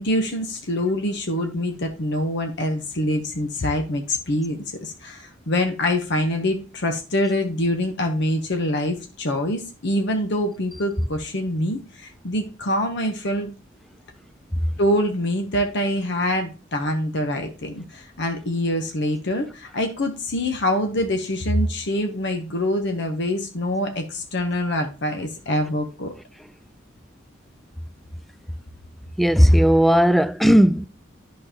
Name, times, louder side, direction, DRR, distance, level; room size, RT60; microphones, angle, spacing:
voice 1, 0.0-13.5 14.8-26.1, left 1 dB, 65° left, 1.0 m, -25 dB
voice 2, 29.2-30.9, equal, ahead, 0.3 m, -15 dB
11.0 x 5.3 x 2.9 m
head